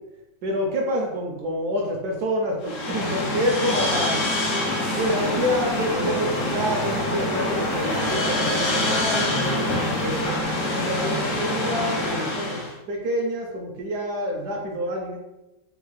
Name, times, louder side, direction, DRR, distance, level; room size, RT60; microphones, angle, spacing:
voice 1, 0.4-4.2 5.0-10.2 10.7-12.6 12.9-15.2, equal, 70° right, 0 dB, 0.9 m, -27 dB
sound 1, 2.6-12.7, left 1 dB, 65° left, 0.7 m, -25 dB
sound 2, 5.1-10.5, right 4 dB, 85° right, 1.4 m, -35 dB
3.8 x 2.3 x 3.0 m, 0.99 s
omnidirectional pair, 2.1 m